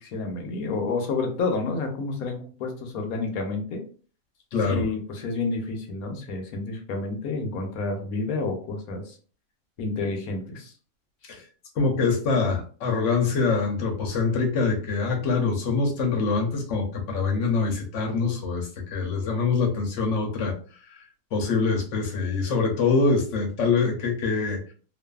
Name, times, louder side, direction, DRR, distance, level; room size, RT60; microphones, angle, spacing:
voice 1, 0.0-3.8 4.6-9.1 9.8-10.7, left 3 dB, 80° left, 3 dB, 1.2 m, -29 dB
voice 2, 4.5-4.8 11.3-11.4 11.8-20.5 21.3-24.7, left 4 dB, 60° left, 1 dB, 1.0 m, -24 dB
2.6 x 2.5 x 2.3 m, 0.40 s
omnidirectional pair, 1.5 m